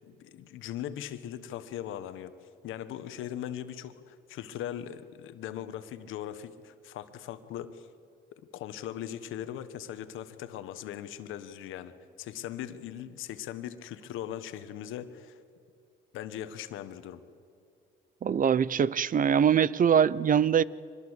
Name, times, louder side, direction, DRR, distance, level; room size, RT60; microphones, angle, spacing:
voice 1, 0.0-2.3 2.6-7.9 8.5-11.9 12.2-15.4 16.1-17.2, left 11 dB, 90° left, 1.3 m, -39 dB
voice 2, 18.2-20.6, right 8 dB, 45° right, 0.6 m, -23 dB
24.5 x 21.0 x 8.1 m
cardioid pair, 90°, 20 cm